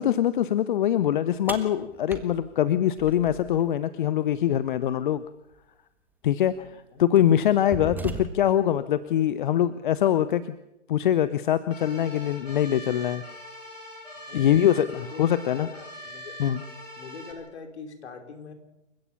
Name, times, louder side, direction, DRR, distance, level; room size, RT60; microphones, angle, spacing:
voice 1, 0.0-5.2 6.2-6.5 7.0-10.6 10.9-13.2 14.3-15.7 16.4-16.6, left 11 dB, 40° left, 15 dB, 0.9 m, -23 dB
sound 1, 1.5-3.6 5.5-5.6 6.5-6.7 7.2-8.6, right 3 dB, 5° right, 1.5 m, -37 dB
voice 2, 6.6-7.0 14.3-16.4 17.0-18.5, left 4 dB, 60° left, 5 dB, 5.0 m, -43 dB
sound 2, 11.7-17.3, equal, 80° left, 6.2 m, -42 dB
28.5 x 15.5 x 7.1 m, 0.89 s
figure-of-eight pair, 130°, 37 cm